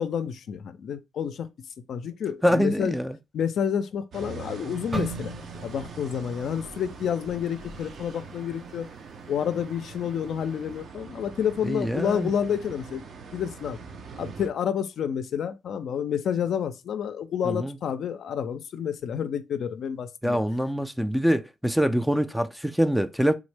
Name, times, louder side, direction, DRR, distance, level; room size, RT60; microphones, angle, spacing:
voice 1, 0.0-1.5 1.9-3.0 3.3-8.9 9.3-13.0 13.3-13.8 14.2-20.4, left 8 dB, 65° left, 0.4 m, -29 dB
voice 2, 2.4-3.1 11.6-12.3 17.4-17.8 20.2-23.3, equal, ahead, 0.3 m, -24 dB
sound 1, 4.1-14.5, right 5 dB, 60° right, 0.5 m, -43 dB
sound 2, 4.9-9.0 9.3-9.6 10.2-10.6, right 2 dB, 25° right, 0.7 m, -39 dB
3.5 x 2.1 x 3.2 m
cardioid pair, 90°, 0 cm